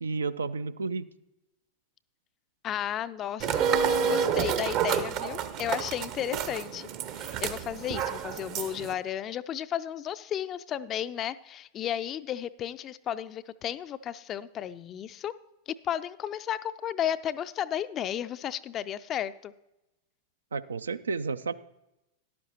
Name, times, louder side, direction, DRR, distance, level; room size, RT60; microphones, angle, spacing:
voice 1, 0.0-1.1 20.5-21.5, right 4 dB, 70° right, 14 dB, 0.3 m, -31 dB
voice 2, 2.6-3.7 4.0-15.3 15.7-19.5, left 10 dB, 30° left, 15 dB, 0.4 m, -33 dB
sound 1, 3.4-8.9, right 7 dB, 40° right, 0.7 m, -29 dB
13.0 x 11.0 x 2.9 m, 0.94 s
figure-of-eight pair, 90°, 0 cm